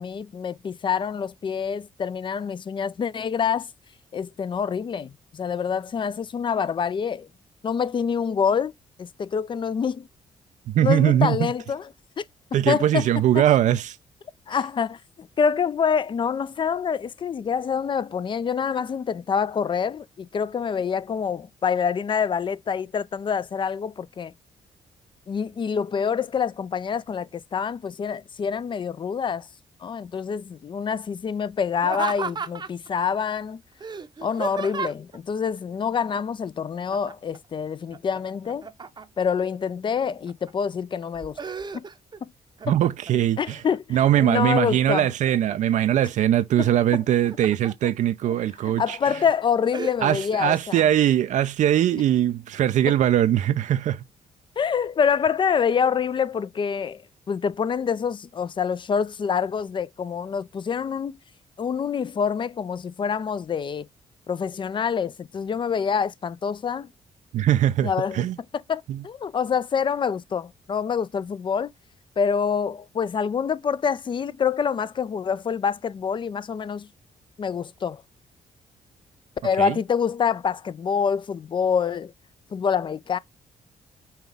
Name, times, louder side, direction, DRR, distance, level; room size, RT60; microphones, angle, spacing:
voice 1, 0.0-3.7 4.1-7.3 7.6-8.7 9.0-10.1 10.8-11.9 12.2-12.3 12.5-13.1 13.3-13.4 14.5-24.3 25.3-29.5 29.8-33.6 34.2-38.7 39.2-41.4 41.7-41.8 42.2-42.3 43.4-45.1 46.6-46.7 47.8-47.9 48.8-50.8 52.9-53.0 54.6-57.0 57.3-61.2 61.6-63.9 64.3-66.9 67.8-68.2 68.5-71.7 72.2-76.9 77.4-78.0 79.4-82.1 82.5-83.2, left 6 dB, 40° left, 0.4 m, -26 dB
voice 2, 10.7-11.5 12.5-14.0 42.6-43.6 43.9-49.2 50.0-54.0 67.3-68.4 68.9-69.0 79.6-79.8, right 11 dB, 70° right, 0.4 m, -21 dB
Laughter, 31.8-32.9 33.8-35.2 36.9-37.4 37.7-39.3 39.9-40.5 40.9-42.2 42.6-43.2 43.7-44.5 44.9-45.8 46.9-47.7 48.2-48.3 48.9-49.2 49.7-50.0, right 5 dB, 35° right, 0.7 m, -34 dB
5.6 x 2.3 x 3.3 m
cardioid pair, 75°, 13 cm